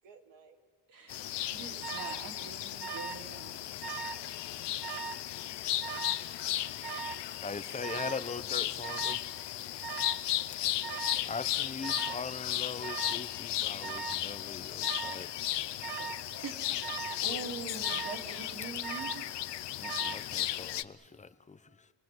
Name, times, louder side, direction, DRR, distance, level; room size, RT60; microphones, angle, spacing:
voice 1, 0.0-0.6 10.9-11.5 16.0-17.2 18.1-18.3, right 4 dB, 80° right, 2.7 m, -56 dB
voice 2, 0.9-3.6 16.4-16.6 17.2-19.3, right 4 dB, 50° right, 3.3 m, -43 dB
sound 1, 1.1-20.8, left 13 dB, 70° left, 0.9 m, -35 dB
Alarm, 1.8-2.3 2.8-3.3 3.6-4.3 4.8-5.2 5.8-6.3 6.8-7.3 7.8-8.3 8.8-9.3 9.8-10.3 10.8-11.3 11.8-12.3 12.8-13.3 13.8-14.3 14.8-15.3 15.8-16.3 16.8-17.3 17.8-18.3 18.8-19.3 19.8-20.3, right 7 dB, 65° right, 1.6 m, -40 dB
voice 3, 7.4-9.2 9.9-10.0 11.2-15.3 19.8-21.9, left 4 dB, 15° left, 0.9 m, -41 dB
29.5 x 20.0 x 7.8 m
cardioid pair, 140°, 43 cm